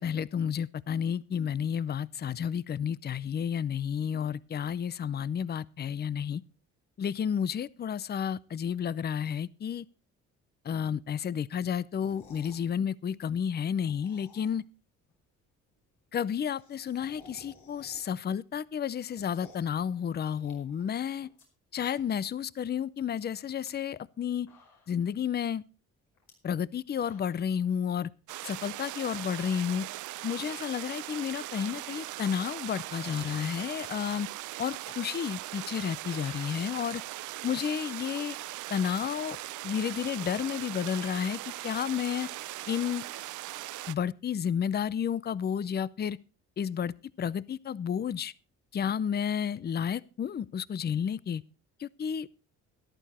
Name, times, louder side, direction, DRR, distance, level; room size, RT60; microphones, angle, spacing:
voice 1, 0.0-6.4 7.0-9.9 10.6-14.6 16.1-21.3 21.7-24.5 24.9-25.6 26.4-28.1 28.4-29.9 30.2-34.3 34.6-37.0 37.4-38.4 38.7-39.4 39.6-42.3 42.7-43.0 43.9-46.2 46.6-48.3 48.7-51.4 51.8-52.3, left 8 dB, 35° left, 0.5 m, -31 dB
sound 1, 11.9-12.7 13.6-14.8 15.1-15.2 15.4-15.5 15.7-15.8 16.1-18.3 18.6-19.7 20.2-21.4 21.7-22.3 22.6-22.7 23.4-23.7 24.2-24.3 24.5-25.1 26.1-26.3 26.8-27.5, left 3 dB, 75° left, 5.3 m, -56 dB
sound 2, 28.3-43.9, right 16 dB, 80° right, 0.6 m, -40 dB
14.0 x 11.5 x 4.2 m
cardioid pair, 90°, 30 cm